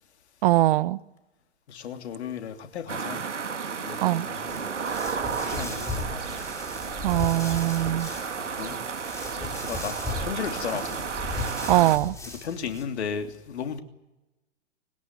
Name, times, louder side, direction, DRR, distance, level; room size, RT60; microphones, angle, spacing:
voice 1, 0.4-1.0 4.0-4.3 7.0-8.1 11.7-12.1, right 15 dB, 50° right, 0.9 m, -22 dB
voice 2, 1.7-3.2 3.8-4.7 5.3-6.4 8.4-8.8 9.3-11.1 12.4-13.8, left 7 dB, 65° left, 3.0 m, -35 dB
sound 1, 2.9-12.0, right 6 dB, 90° right, 1.7 m, -33 dB
sound 2, 4.5-12.8, left 2 dB, 10° left, 4.9 m, -37 dB
21.5 x 19.5 x 9.6 m
hypercardioid pair, 115°, 35 cm